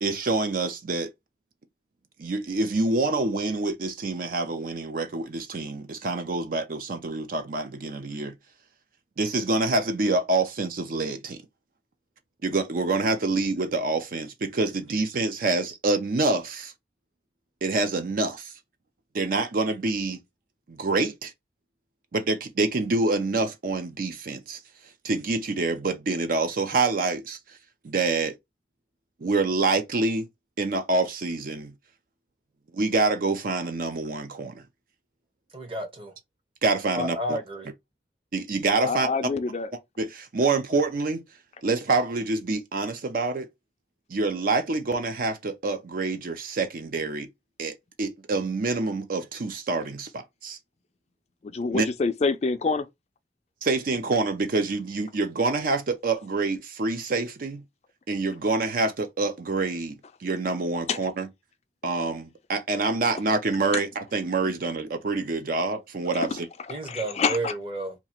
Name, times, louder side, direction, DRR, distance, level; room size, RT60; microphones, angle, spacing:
voice 1, 0.0-1.1 2.2-8.4 9.2-11.4 12.4-16.7 17.6-18.5 19.1-20.2 20.7-21.3 22.1-24.6 25.0-27.6 27.8-28.4 29.2-30.3 30.6-31.7 32.7-34.6 36.6-37.4 38.3-39.1 40.0-41.2 41.6-43.5 44.1-47.3 47.6-50.6 51.7-51.9 53.6-57.6 58.1-59.9 60.2-61.3 61.8-66.5, right 3 dB, 50° right, 0.5 m, -26 dB
voice 2, 35.5-36.1 36.9-37.7 66.7-67.9, right 1 dB, 30° right, 0.9 m, -31 dB
voice 3, 38.8-39.7 51.4-52.9 60.9-61.0 66.2-66.4 66.7-67.5, left 4 dB, 35° left, 0.4 m, -27 dB
2.9 x 2.4 x 4.3 m
head